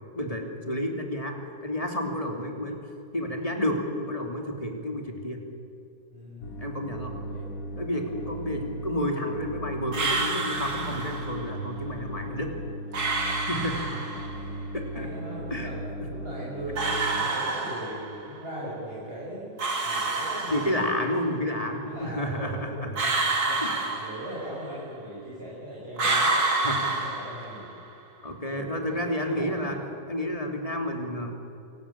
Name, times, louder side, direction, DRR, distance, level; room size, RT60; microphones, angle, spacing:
voice 1, 0.1-2.8 3.1-5.4 6.6-7.2 7.8-12.5 13.5-13.9 14.7-15.1 15.5-15.7 16.0-16.1 20.5-22.9 23.6-23.8 26.6-26.9 28.2-29.8 30.1-31.3, left 1 dB, 20° left, 2 dB, 2.9 m, -30 dB
voice 2, 6.1-6.7 7.1-7.5 8.0-8.7 13.9-14.6 14.9-15.8 16.1-19.6 19.8-21.3 21.8-23.0 23.4-23.6 23.9-26.3 27.0-27.7 28.5-29.7, right 1 dB, 30° right, -8 dB, 6.8 m, -40 dB
sound 1, 6.4-17.2, right 1 dB, 50° left, 2.7 m, -37 dB
sound 2, 9.9-11.4 12.9-14.4 16.7-18.3 19.6-21.1 22.9-24.7 26.0-27.8, right 3 dB, 60° right, 3.1 m, -28 dB
26.0 x 17.5 x 8.7 m, 2.7 s
omnidirectional pair, 1.9 m